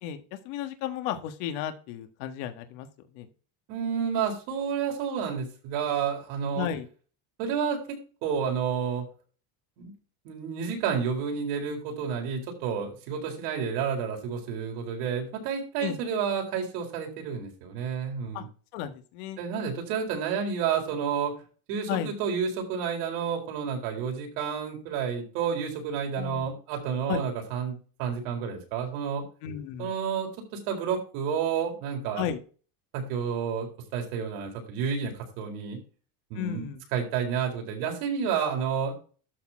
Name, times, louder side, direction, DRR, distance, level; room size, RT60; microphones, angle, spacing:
voice 1, 0.0-2.9 3.1-3.3 6.5-6.9 15.8-16.0 18.3-18.4 18.7-19.4 21.9-22.1 26.2-26.5 27.1-27.2 29.4-29.9 32.2-32.4 36.3-36.8, left 10 dB, 75° left, 7 dB, 1.6 m, -33 dB
voice 2, 3.7-6.7 7.4-7.8 8.2-9.1 9.8-9.9 10.2-18.5 19.4-21.3 21.7-29.3 29.8-30.3 30.7-32.3 32.9-35.8 36.3-38.9, right 7 dB, 85° right, 2 dB, 4.2 m, -30 dB
12.5 x 4.3 x 4.4 m, 0.36 s
cardioid pair, 180°, 45 cm